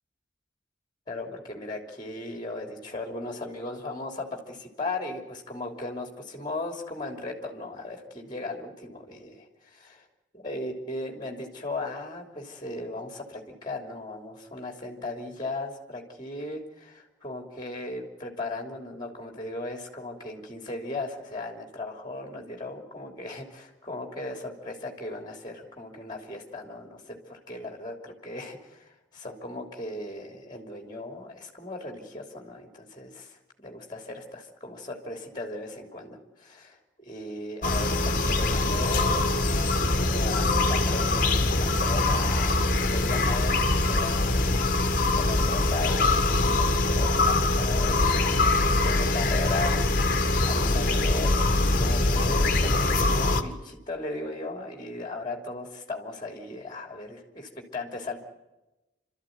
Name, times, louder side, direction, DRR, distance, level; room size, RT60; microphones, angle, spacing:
voice 1, 1.1-9.9 10.4-39.3 39.9-44.5 44.8-58.2, left 2 dB, 25° left, 4 dB, 3.2 m, -37 dB
sound 1, 37.6-53.4, left 2 dB, 45° left, 1.7 m, -23 dB
28.5 x 13.5 x 9.4 m, 1.0 s
head